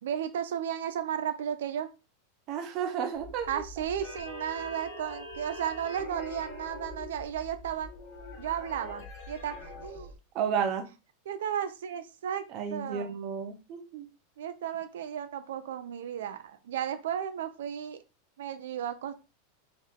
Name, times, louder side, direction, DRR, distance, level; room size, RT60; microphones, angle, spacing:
voice 1, 0.0-1.9 3.5-7.9 8.4-10.1 11.3-12.5 12.7-13.2 14.4-18.0 18.4-19.2, right 9 dB, 85° right, 9 dB, 0.6 m, -34 dB
voice 2, 2.5-3.6 10.3-10.9 12.5-14.1, right 7 dB, 30° right, 4 dB, 0.7 m, -32 dB
sound 1, 3.1-10.2, left 2 dB, 30° left, 1.3 m, -44 dB
4.3 x 3.3 x 3.7 m, 0.29 s
supercardioid pair, 180°, 0 cm